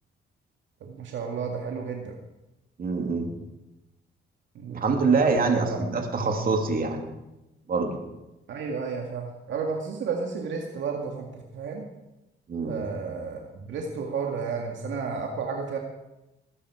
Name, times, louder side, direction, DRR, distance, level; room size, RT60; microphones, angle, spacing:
voice 1, 0.8-2.2 4.6-5.8 8.5-11.8 12.7-15.8, right 5 dB, 70° right, 1 dB, 2.2 m, -32 dB
voice 2, 2.8-3.3 4.7-7.0 7.7-8.0 12.5-12.9, right 4 dB, 45° right, 3 dB, 2.9 m, -25 dB
20.5 x 11.5 x 5.0 m, 0.96 s
cardioid pair, 90°, 20 cm